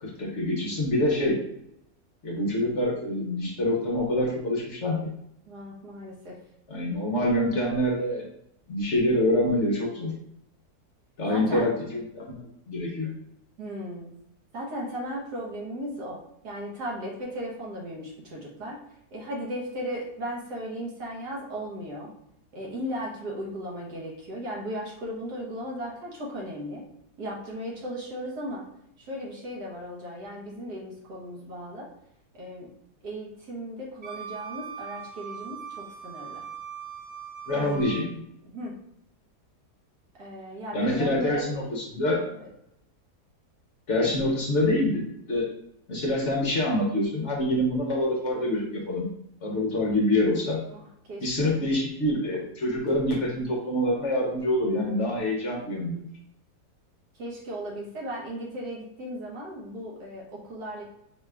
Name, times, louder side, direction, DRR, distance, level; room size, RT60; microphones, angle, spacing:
voice 1, 0.0-1.4 2.2-5.1 6.7-8.2 8.7-10.1 11.2-13.1 37.5-38.2 40.7-42.2 43.9-45.4 45.9-49.1 49.4-50.6 51.2-56.0, left 1 dB, 55° left, -2 dB, 0.9 m, -26 dB
voice 2, 5.5-6.4 11.3-11.7 13.6-14.1 14.5-18.8 19.1-22.1 22.5-26.8 27.2-28.6 29.0-31.9 32.3-32.7 33.0-36.4 37.5-37.8 38.4-38.8 40.2-41.6 42.3-42.5 44.0-44.2 50.7-51.6 57.1-60.8, equal, 75° right, -3 dB, 1.6 m, -36 dB
Wind instrument woodwind instrument, 34.0-38.1, right 7 dB, 40° right, 0.7 m, -40 dB
4.9 x 2.4 x 3.3 m, 0.77 s
omnidirectional pair, 1.7 m